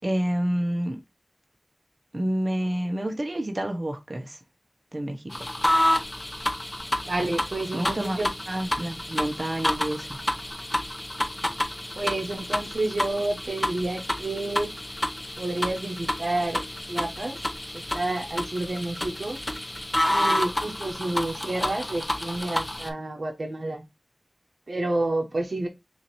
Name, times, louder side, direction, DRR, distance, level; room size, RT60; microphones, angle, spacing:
voice 1, 0.0-1.0 2.1-4.4 4.9-5.2 7.7-8.2 8.5-10.2, right 1 dB, 50° right, 1.0 m, -28 dB
sound 1, 5.3-22.9, left 1 dB, 25° left, 0.8 m, -29 dB
voice 2, 7.0-8.3 11.9-14.7 15.4-17.4 17.9-19.4 20.1-23.8 24.7-25.7, right 2 dB, 80° right, 1.0 m, -29 dB
6.2 x 2.7 x 3.0 m
wide cardioid pair, 50°, 0 cm